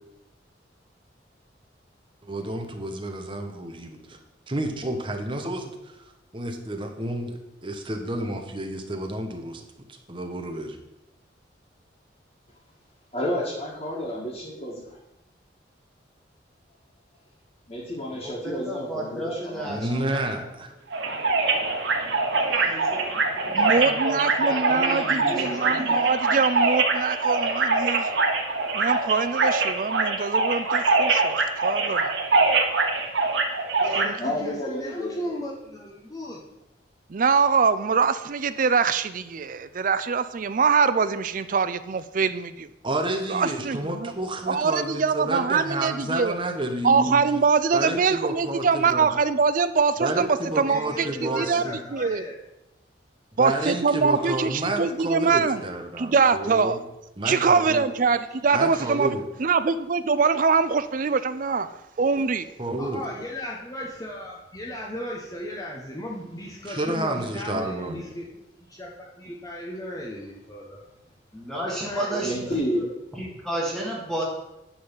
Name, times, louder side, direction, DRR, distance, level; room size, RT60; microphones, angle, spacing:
voice 1, 2.2-4.2 4.5-5.9 6.3-9.6 10.1-10.8 19.7-20.7 42.8-47.2 47.7-49.1 50.0-51.8 53.4-56.8 57.2-57.8 58.5-59.2 62.6-63.0 66.7-68.0, right 1 dB, 30° right, 4 dB, 1.1 m, -30 dB
voice 2, 13.1-15.0 17.7-19.7 34.2-35.4 72.2-72.8, left 1 dB, 35° left, -7 dB, 2.0 m, -30 dB
voice 3, 18.1-20.6 22.5-26.0 71.3-72.6 73.1-74.2, right 1 dB, 5° left, -4 dB, 1.8 m, -33 dB
sound 1, 20.9-34.1, right 3 dB, 85° right, 1.3 m, -23 dB
voice 4, 23.5-28.1 28.7-32.1 34.0-34.1 37.1-42.7 43.3-44.1 44.5-46.3 46.8-51.6 51.9-52.2 53.4-55.6 56.0-56.8 57.2-62.5, right 5 dB, 45° right, 13 dB, 0.4 m, -23 dB
voice 5, 25.1-26.4 33.8-36.4 50.5-52.3 54.1-54.5 58.7-59.0 62.8-70.8 71.6-72.6, left 1 dB, 20° left, -3 dB, 1.0 m, -36 dB
10.0 x 3.9 x 7.2 m, 0.90 s
head